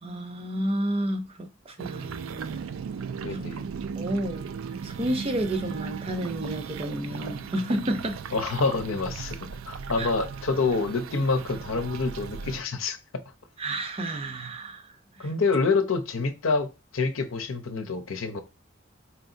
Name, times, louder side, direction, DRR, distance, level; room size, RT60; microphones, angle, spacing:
voice 1, 0.0-2.6 3.3-3.4 4.0-4.5 4.8-8.2 10.0-10.1 13.6-14.9, right 1 dB, 30° right, 0.6 m, -30 dB
sound 1, 1.8-12.6, right 6 dB, 85° right, 0.3 m, -37 dB
voice 2, 3.2-3.7 8.3-9.4 9.7-13.0 15.2-16.7 16.9-18.4, left 4 dB, 90° left, 0.7 m, -27 dB
4.5 x 2.9 x 2.6 m
head